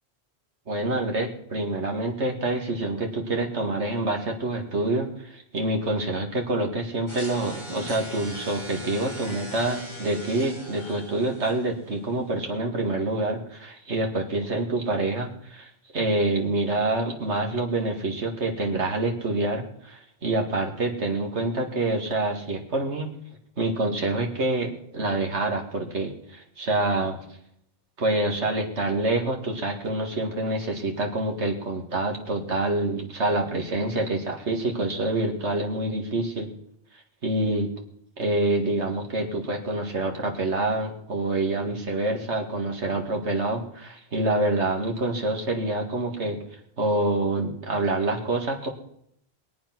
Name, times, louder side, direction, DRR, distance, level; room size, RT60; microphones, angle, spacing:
voice 1, 0.7-23.1 23.6-27.2 28.0-36.5 37.2-37.7 38.2-46.4 46.8-48.7, right 2 dB, 90° right, 2 dB, 2.4 m, -27 dB
sound 1, 7.1-12.1, left 1 dB, 25° left, 4.6 m, -39 dB
21.5 x 8.6 x 6.1 m, 0.72 s
omnidirectional pair, 1.1 m